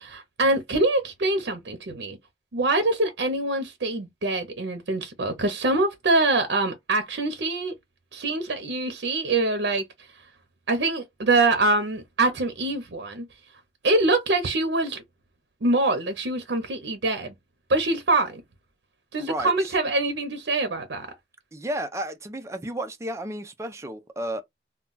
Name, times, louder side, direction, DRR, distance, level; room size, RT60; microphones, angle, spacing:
voice 1, 0.0-2.2 2.5-7.7 8.1-9.8 10.7-13.3 13.8-15.0 15.6-17.3 17.7-18.4 19.1-21.1, right 2 dB, 75° right, 0.7 m, -24 dB
voice 2, 19.2-19.7 21.5-24.4, right 1 dB, 15° right, 0.4 m, -32 dB
2.2 x 2.2 x 3.7 m
head